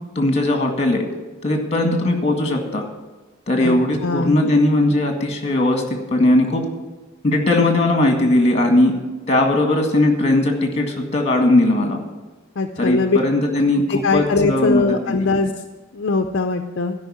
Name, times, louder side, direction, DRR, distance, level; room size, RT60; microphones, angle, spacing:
voice 1, 0.2-1.0 1.4-2.9 3.5-5.8 6.1-6.6 7.2-8.9 9.3-12.0 12.8-13.8 14.1-15.3, left 1 dB, 30° left, 4 dB, 1.8 m, -18 dB
voice 2, 4.0-4.4 12.6-13.2 13.9-15.5 15.9-16.9, left 3 dB, 55° left, 5 dB, 0.6 m, -20 dB
13.0 x 5.5 x 8.7 m, 1.2 s
head